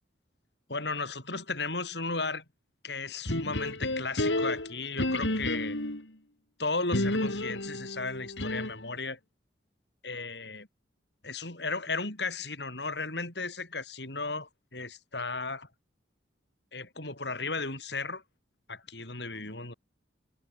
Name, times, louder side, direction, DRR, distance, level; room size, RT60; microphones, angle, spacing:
voice 1, 0.7-2.4 2.8-5.8 6.6-9.2 10.0-10.7 11.2-15.7 16.7-18.2 18.7-19.7, left 3 dB, 70° left, 7.0 m, -35 dB
sound 1, 3.3-6.0 6.9-8.9, left 1 dB, 85° left, 4.5 m, -31 dB
head